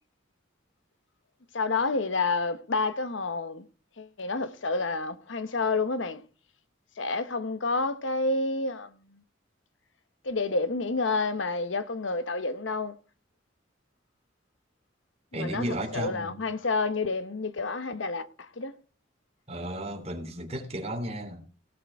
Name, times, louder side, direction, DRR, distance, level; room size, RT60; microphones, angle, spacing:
voice 1, 1.5-3.6 4.0-6.2 7.0-9.2 10.2-12.9 15.3-18.7, left 3 dB, 70° left, 1.1 m, -29 dB
voice 2, 15.3-16.4 19.5-21.4, right 1 dB, 30° right, 3.3 m, -34 dB
18.0 x 6.8 x 4.7 m
head